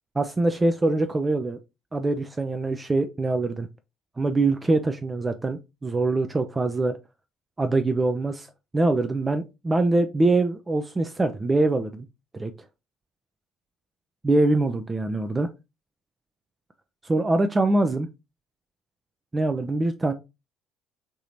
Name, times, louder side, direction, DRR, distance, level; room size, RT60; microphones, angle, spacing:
voice 1, 0.2-1.6 1.9-3.7 4.2-7.0 7.6-8.5 8.7-12.1 12.3-12.5 14.2-15.5 17.0-18.1 19.3-20.1, right 2 dB, 20° right, 0.3 m, -23 dB
3.3 x 2.8 x 2.6 m
figure-of-eight pair, 55°, 0 cm